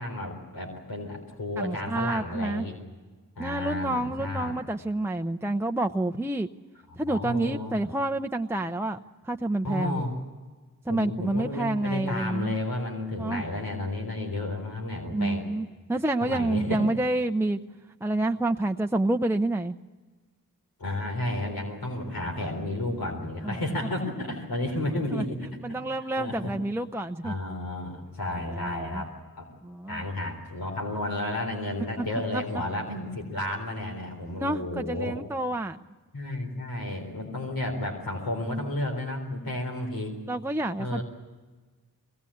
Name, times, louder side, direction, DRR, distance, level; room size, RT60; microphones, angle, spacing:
voice 1, 0.0-2.8 3.4-4.6 6.9-7.8 9.6-10.1 10.9-15.5 16.2-16.8 20.8-26.5 27.2-29.5 29.9-35.2 36.1-40.2 40.8-41.0, left 1 dB, 85° left, 2 dB, 4.0 m, -32 dB
voice 2, 1.6-2.7 3.4-6.5 7.0-9.0 9.2-10.0 10.9-12.5 13.2-13.4 15.1-17.6 18.0-19.8 23.4-23.6 25.1-25.2 25.6-27.3 28.5-29.0 29.6-30.0 34.4-35.8 40.3-41.0, right 2 dB, 5° right, 5 dB, 0.7 m, -28 dB
22.0 x 18.5 x 8.5 m, 1.4 s
cardioid pair, 55°, 35 cm